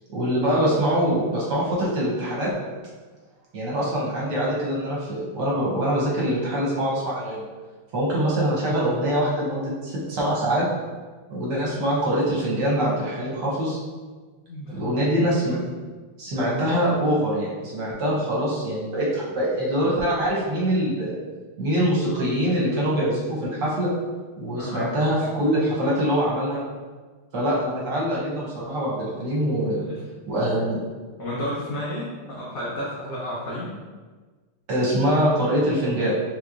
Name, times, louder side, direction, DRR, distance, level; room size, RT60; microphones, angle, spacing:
voice 1, 0.1-2.5 3.5-7.4 7.9-10.7 11.3-13.8 14.7-15.6 16.2-21.2 21.6-23.9 24.4-26.6 27.3-29.8 30.3-30.8 34.7-36.1, equal, 65° right, -6 dB, 1.2 m, -24 dB
voice 2, 14.5-15.0 24.5-24.9 29.9-30.0 31.2-33.7, left 1 dB, 80° left, -6 dB, 0.7 m, -32 dB
4.2 x 3.1 x 2.4 m, 1.4 s
omnidirectional pair, 2.3 m